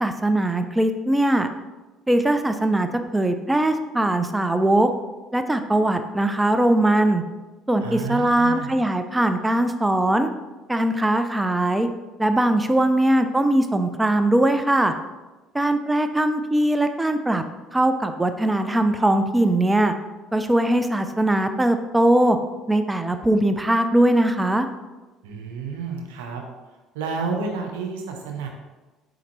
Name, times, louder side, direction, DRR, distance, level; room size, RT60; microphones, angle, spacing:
voice 1, 0.0-1.5 2.1-4.9 5.3-7.2 7.7-10.3 10.7-11.9 12.2-14.9 15.5-17.4 17.7-19.9 20.3-22.4 22.7-24.7, right 1 dB, 15° right, 8 dB, 0.3 m, -20 dB
voice 2, 7.8-8.8 25.2-26.4 26.9-28.5, right 4 dB, 85° right, 3 dB, 0.6 m, -30 dB
4.4 x 3.7 x 3.0 m, 1.2 s
hypercardioid pair, 70°, 0 cm